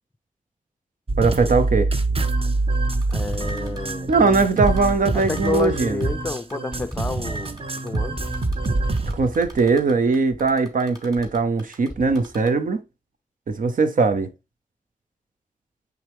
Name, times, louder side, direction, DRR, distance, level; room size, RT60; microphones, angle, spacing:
sound 1, 1.1-9.1, right 2 dB, 45° right, 0.8 m, -25 dB
voice 1, 1.2-1.9 4.1-6.0 9.1-12.8 13.5-14.3, right 4 dB, 90° right, 0.8 m, -20 dB
Typing, 2.9-4.9 5.2-6.0 6.4-8.0 8.3-8.7 9.0-11.9 12.1-12.5, equal, 30° right, 2.8 m, -46 dB
voice 2, 3.1-4.1 5.1-7.5 7.8-8.2, left 3 dB, 15° left, 0.3 m, -29 dB
sound 2, 4.1-4.9 5.4-6.3 6.7-7.5 8.1-10.7 11.2-11.5 11.9-12.4, equal, 5° right, 0.9 m, -36 dB
7.7 x 3.6 x 3.5 m
wide cardioid pair, 75°, 14 cm